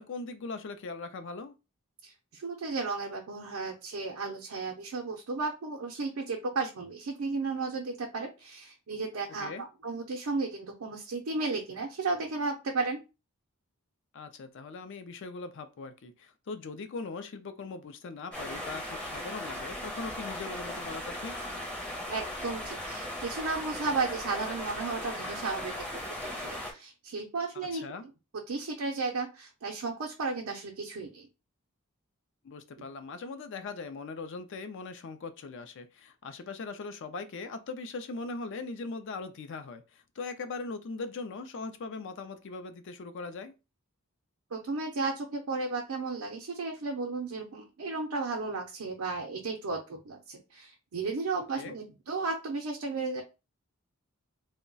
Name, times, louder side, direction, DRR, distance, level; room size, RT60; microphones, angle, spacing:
voice 1, 0.0-1.6 9.4-9.6 14.1-21.4 27.5-28.0 32.4-43.5 51.5-51.8, left 4 dB, 55° left, 0.4 m, -40 dB
voice 2, 2.0-13.0 22.1-27.9 28.5-31.3 32.8-32.9 44.5-53.2, right 3 dB, 80° right, 0.5 m, -34 dB
sound 1, 18.3-26.7, left 1 dB, 5° left, 0.6 m, -38 dB
2.3 x 2.1 x 3.8 m
head